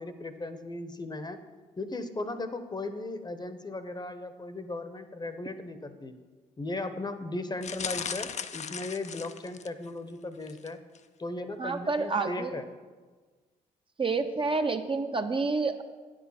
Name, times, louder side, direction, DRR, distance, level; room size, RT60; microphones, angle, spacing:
voice 1, 0.0-1.4 1.8-6.2 6.6-10.8 11.2-12.7, left 2 dB, 25° left, 10 dB, 0.9 m, -37 dB
sound 1, 7.6-9.9 10.4-10.7 11.0-11.1, left 7 dB, 45° left, 0.5 m, -37 dB
voice 2, 11.6-12.6 14.0-15.8, right 3 dB, 30° right, 6 dB, 0.7 m, -29 dB
9.3 x 6.3 x 5.7 m, 1.4 s
supercardioid pair, 50°, 17 cm